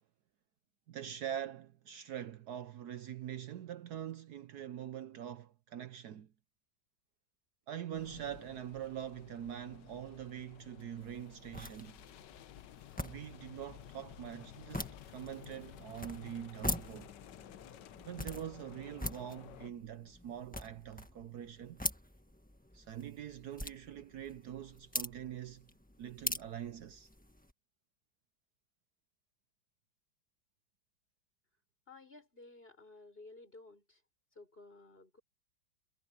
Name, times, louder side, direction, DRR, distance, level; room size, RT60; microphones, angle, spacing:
voice 1, 0.9-6.3 7.7-12.0 13.0-17.1 18.0-21.8 22.7-25.7 26.0-27.1, right 10 dB, 65° right, 1.2 m, -44 dB
sound 1, 7.9-19.7, left 11 dB, 75° left, 1.5 m, -54 dB
sound 2, 11.0-27.5, left 1 dB, 5° left, 1.4 m, -44 dB
voice 2, 31.9-34.0 34.4-35.2, left 3 dB, 30° left, 5.5 m, -55 dB
omnidirectional pair, 1.9 m